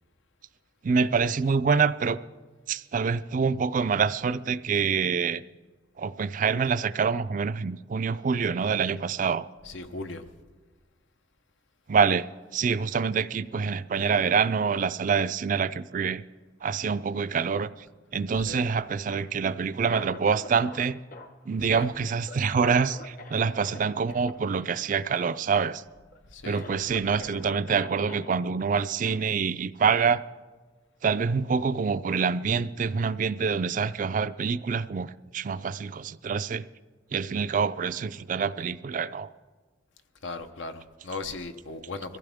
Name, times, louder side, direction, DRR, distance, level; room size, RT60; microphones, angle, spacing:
voice 1, 0.8-2.2 2.7-5.4 6.0-9.5 11.9-12.3 12.5-16.2 16.6-17.7 18.1-21.0 21.5-25.8 26.4-30.2 31.0-36.7 37.1-39.3, right 5 dB, 45° right, 0.4 m, -26 dB
voice 2, 9.6-10.2 18.4-18.6 21.6-21.9 26.3-26.6 40.2-42.2, left 3 dB, 85° left, 0.9 m, -37 dB
Cough, 19.0-20.8 21.1-23.8 24.1-24.3 24.7-24.8 25.1-25.6 26.1-26.2 26.5-28.3 29.0-29.2, left 2 dB, 50° left, 1.0 m, -45 dB
22.5 x 15.0 x 3.5 m
head